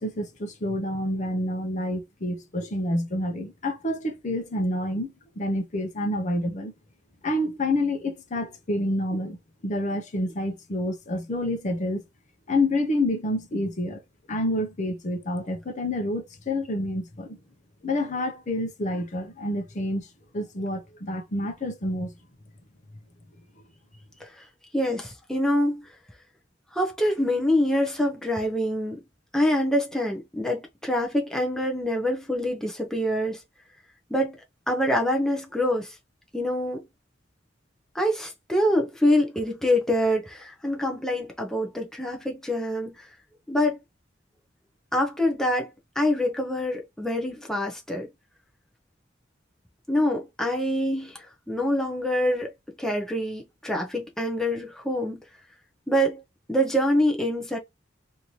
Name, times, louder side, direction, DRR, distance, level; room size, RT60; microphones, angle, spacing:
voice 1, 0.0-6.7 7.2-9.4 9.6-12.0 12.5-14.0 14.3-17.4 17.8-20.1 20.3-22.1, left 1 dB, 40° left, 0.7 m, -28 dB
voice 2, 24.7-25.8 26.7-29.0 29.3-33.4 34.1-34.4 34.7-35.9 36.3-36.8 37.9-43.0 43.5-43.8 44.9-45.7 46.0-48.1 49.9-52.5 52.8-55.2 55.9-56.2 56.5-57.6, left 1 dB, 5° left, 0.6 m, -25 dB
3.1 x 2.7 x 2.8 m
head